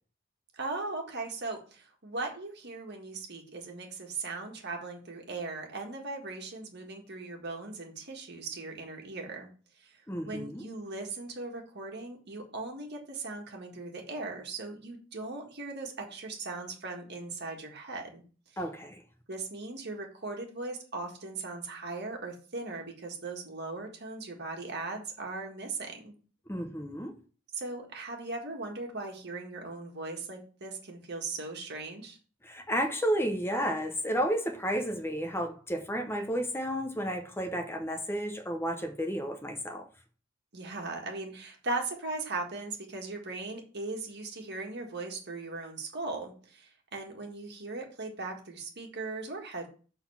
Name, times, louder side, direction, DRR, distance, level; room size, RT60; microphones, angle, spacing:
voice 1, 0.6-9.5 9.8-10.0 10.2-18.2 19.3-26.1 27.5-32.2 40.5-49.7, right 3 dB, 55° right, 1.7 m, -38 dB
voice 2, 10.1-10.7 18.6-19.0 26.5-27.1 32.4-39.9, equal, 10° left, 0.8 m, -32 dB
6.8 x 4.0 x 5.6 m
head